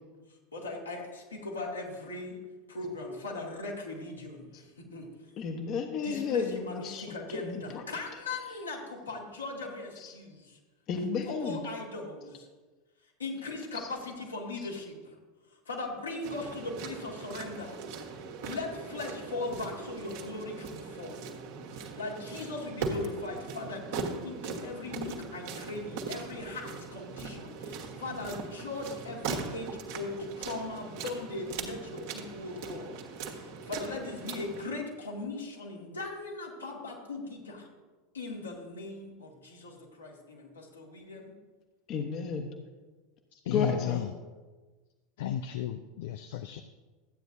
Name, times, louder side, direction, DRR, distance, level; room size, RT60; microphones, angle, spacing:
voice 1, 0.3-2.4 2.7-5.1 6.0-10.6 11.2-12.5 13.2-15.2 15.5-17.8 18.4-21.3 21.7-37.7 38.1-41.3, left 3 dB, 80° left, -3 dB, 2.2 m, -39 dB
voice 2, 5.4-7.8 10.0-10.1 10.9-11.6 13.7-13.9 41.9-42.5 43.5-44.0, left 5 dB, 45° left, 5 dB, 1.1 m, -33 dB
sound 1, 16.2-34.7, right 4 dB, 60° right, 1.5 m, -40 dB
voice 3, 43.3-44.1 45.2-46.6, left 10 dB, 60° left, 9 dB, 0.4 m, -33 dB
14.0 x 9.1 x 2.7 m, 1.3 s
figure-of-eight pair, 80°, 0 cm